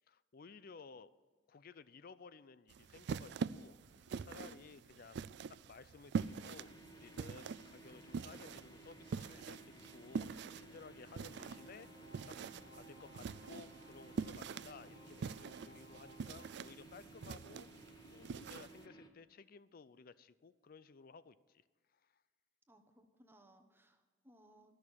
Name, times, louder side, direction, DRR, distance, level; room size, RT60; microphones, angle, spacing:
voice 1, 0.1-1.2 1.5-11.9 12.3-12.4 12.7-17.7 18.1-21.6 21.9-22.2, left 4 dB, 55° left, 16 dB, 0.5 m, -57 dB
sound 1, 2.7-18.8, right 5 dB, 65° right, 0.3 m, -45 dB
sound 2, 6.1-19.1, right 1 dB, 25° left, 1.1 m, -57 dB
sound 3, 11.2-16.5, left 1 dB, 85° left, 2.5 m, -62 dB
voice 2, 22.7-24.8, equal, 10° right, 5 dB, 1.1 m, -64 dB
13.0 x 6.4 x 8.8 m, 1.5 s
head